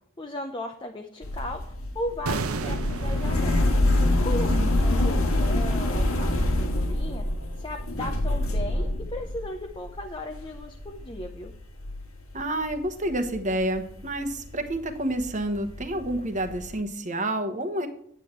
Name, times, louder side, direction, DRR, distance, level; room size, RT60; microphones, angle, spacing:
voice 1, 0.2-3.7 4.2-7.2 7.6-11.5, left 1 dB, 20° left, 3 dB, 0.7 m, -36 dB
sound 1, 1.2-12.8 13.1-16.8, left 1 dB, 85° left, 1.7 m, -26 dB
sound 2, 2.3-7.3 7.5-7.7, right 3 dB, 90° right, 0.8 m, -36 dB
voice 2, 12.3-17.9, right 1 dB, 35° right, 8 dB, 1.1 m, -29 dB
8.9 x 8.1 x 4.5 m, 0.65 s
head